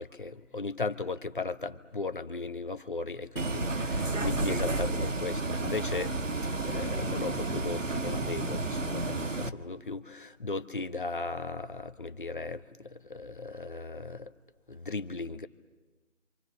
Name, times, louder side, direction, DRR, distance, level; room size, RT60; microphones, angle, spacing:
voice 1, 0.0-6.1 6.6-14.3 14.7-15.5, left 3 dB, 40° left, 9 dB, 1.2 m, -36 dB
Bus, 3.4-9.5, right 2 dB, 75° right, 1.5 m, -31 dB
29.5 x 26.5 x 7.2 m, 1.2 s
figure-of-eight pair, 165°, 38 cm